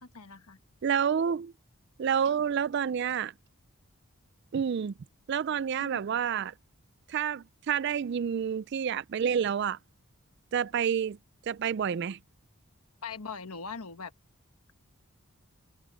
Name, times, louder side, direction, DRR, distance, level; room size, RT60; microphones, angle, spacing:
voice 1, 0.0-0.6 5.8-6.0 13.0-14.1, left 5 dB, 90° left, 1.4 m, -41 dB
voice 2, 0.8-1.5 2.0-3.3 4.5-4.9 5.3-6.5 7.1-9.8 10.5-11.2 11.5-12.2, right 7 dB, 50° right, 0.3 m, -29 dB
head